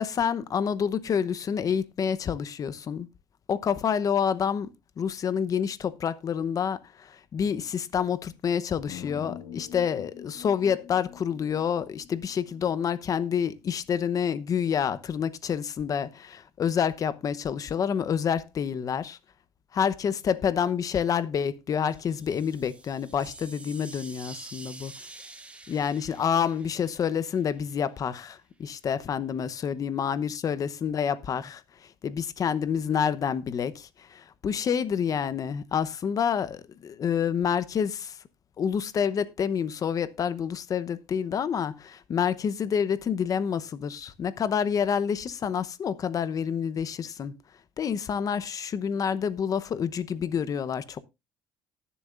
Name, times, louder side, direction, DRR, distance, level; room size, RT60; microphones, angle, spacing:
voice 1, 0.0-3.1 3.5-4.7 5.0-19.2 19.7-24.9 25.7-31.6 32.0-38.2 38.6-47.3 47.8-51.0, left 7 dB, 45° left, 0.9 m, -28 dB
sound 1, 8.9-13.0, left 8 dB, 85° left, 1.3 m, -45 dB
sound 2, 21.8-27.7, right 2 dB, 15° right, 1.6 m, -47 dB
19.0 x 7.1 x 2.5 m
cardioid pair, 105°, 8 cm